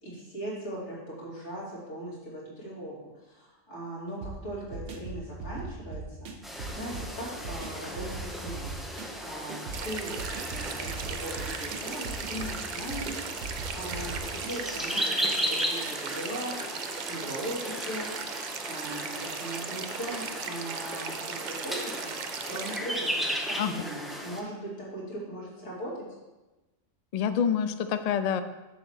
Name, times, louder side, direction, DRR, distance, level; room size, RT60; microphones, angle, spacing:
voice 1, 0.0-3.0 3.2-6.3 6.8-13.4 13.7-16.6 17.0-18.1 18.7-21.9 22.4-25.9, right 1 dB, 65° left, -7 dB, 3.1 m, -39 dB
sound 1, 4.2-15.1, right 3 dB, 75° right, 1.2 m, -40 dB
sound 2, 6.4-24.4, equal, ahead, 0.9 m, -36 dB
sound 3, 9.7-22.8, right 6 dB, 60° right, 0.5 m, -38 dB
voice 2, 27.1-28.4, left 7 dB, 90° left, 9 dB, 0.3 m, -27 dB
7.2 x 4.0 x 6.4 m, 1.1 s
omnidirectional pair, 1.3 m